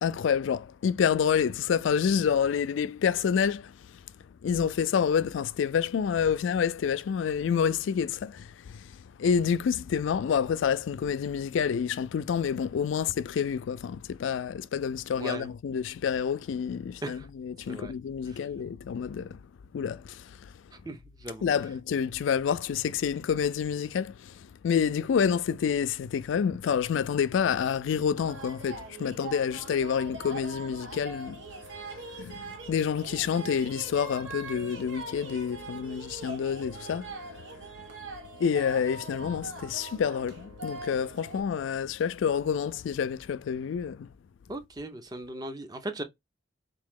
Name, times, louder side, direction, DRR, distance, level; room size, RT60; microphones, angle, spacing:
voice 1, 0.0-3.7 4.4-8.9 9.2-19.4 19.7-20.5 21.4-31.4 32.2-37.4 38.4-44.1, left 7 dB, 65° left, 0.3 m, -28 dB
voice 2, 15.2-15.5 17.0-17.3 17.7-17.9 18.2-18.4 20.7-21.5 44.5-46.0, right 2 dB, 20° right, 0.5 m, -38 dB
sound 1, 28.2-41.4, right 3 dB, 65° right, 1.1 m, -42 dB
3.7 x 2.7 x 3.6 m
head